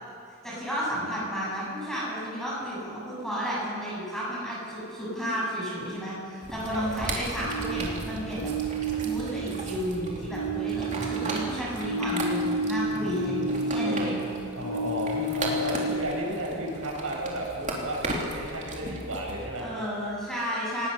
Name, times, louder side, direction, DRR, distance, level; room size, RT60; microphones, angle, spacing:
voice 1, 0.4-8.5 9.0-14.2 19.6-20.9, equal, ahead, -7 dB, 7.9 m, -32 dB
sound 1, 6.4-19.6, right 2 dB, 35° right, 3.1 m, -37 dB
sound 2, 7.4-10.0 10.2-14.2 14.5-16.2, right 2 dB, 80° left, 2.4 m, -31 dB
voice 2, 12.9-14.2 14.5-19.7, right 1 dB, 75° right, -2 dB, 6.7 m, -33 dB
26.0 x 18.5 x 6.9 m, 2.6 s
head